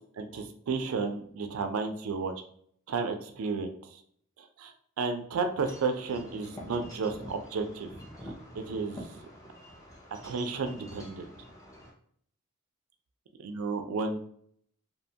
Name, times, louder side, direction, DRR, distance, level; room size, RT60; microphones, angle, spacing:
voice 1, 0.2-2.3 2.9-3.7 4.6-4.7 5.0-7.9 8.6-9.1 10.2-11.3 13.4-14.2, right 4 dB, 90° right, 6 dB, 0.4 m, -32 dB
Wind chime / Wind, 5.6-11.9, equal, 15° left, 0.4 m, -46 dB
2.7 x 2.2 x 2.7 m, 0.64 s
head